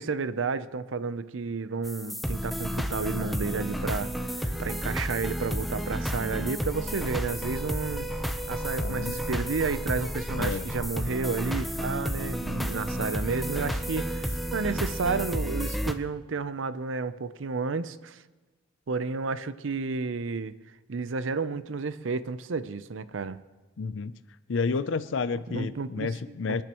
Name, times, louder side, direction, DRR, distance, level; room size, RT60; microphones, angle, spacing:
voice 1, 0.0-4.1 4.6-18.2 18.9-20.5 20.9-23.4 25.5-26.1 26.4-26.6, right 4 dB, 75° right, 14 dB, 0.6 m, -31 dB
sound 1, 1.8-15.9, equal, ahead, 0.7 m, -31 dB
voice 2, 8.8-9.2 10.3-10.7 23.8-24.1 24.5-26.6, left 4 dB, 70° left, 13 dB, 0.5 m, -30 dB
26.5 x 10.5 x 3.0 m, 1.2 s
head